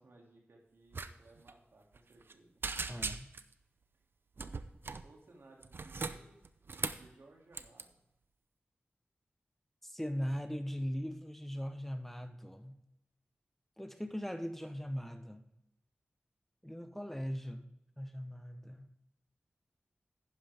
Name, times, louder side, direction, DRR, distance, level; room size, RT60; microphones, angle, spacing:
voice 1, 0.0-2.6 3.9-4.0 4.9-6.4 6.9-8.0, right 2 dB, 80° right, 0 dB, 2.5 m, -61 dB
sound 1, 0.9-1.1 1.4-1.5 1.9-2.3 2.6-3.5 4.4-5.1 5.6-7.1 7.5-7.8, right 4 dB, 65° right, 0.6 m, -39 dB
voice 2, 2.9-3.3 9.8-12.8 13.8-15.4 16.6-17.7 18.0-18.9, equal, 5° left, 8 dB, 0.9 m, -39 dB
11.0 x 9.9 x 3.5 m, 0.87 s
cardioid pair, 50°, 4 cm